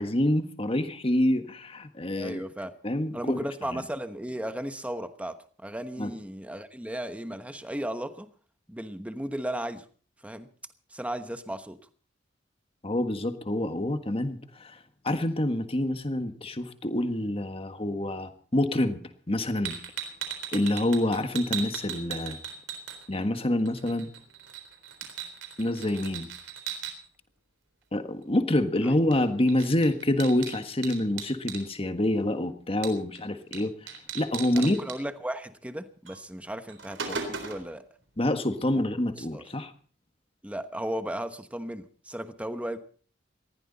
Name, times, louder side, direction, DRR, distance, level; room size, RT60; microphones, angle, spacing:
voice 1, 0.0-2.4 2.8-3.5 3.7-3.8 6.0-6.1 12.8-14.8 15.0-19.0 19.3-19.7 20.5-22.4 23.1-24.1 25.6-26.3 27.9-34.8 38.2-39.7, left 1 dB, 30° left, 9 dB, 1.6 m, -27 dB
voice 2, 2.1-2.8 3.1-8.3 8.7-9.8 10.2-10.5 10.9-11.8 34.5-37.8 39.2-39.4 40.4-42.8, right 1 dB, 5° right, 10 dB, 1.1 m, -35 dB
sound 1, 19.6-23.4 23.7-26.9 29.1-29.2 29.5-31.6 32.8-33.2 33.5-33.6 33.9-35.0 36.1-36.2 36.5-37.7, right 7 dB, 80° right, 3.9 m, -37 dB
20.0 x 15.5 x 4.2 m, 0.42 s
head